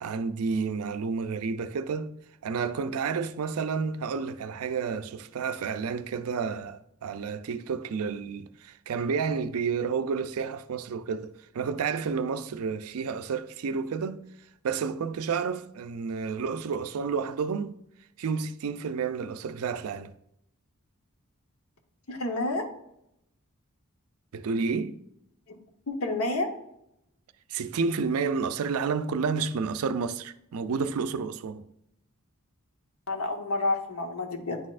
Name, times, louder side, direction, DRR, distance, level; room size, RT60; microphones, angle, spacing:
voice 1, 0.0-2.1 2.4-14.2 14.6-17.8 18.2-20.1 24.3-25.0 27.5-31.6, right 5 dB, 70° right, 0.4 m, -30 dB
voice 2, 22.1-22.7 25.5-25.6 25.9-26.5 33.1-34.6, left 2 dB, 70° left, 1.0 m, -29 dB
9.7 x 4.1 x 2.4 m
head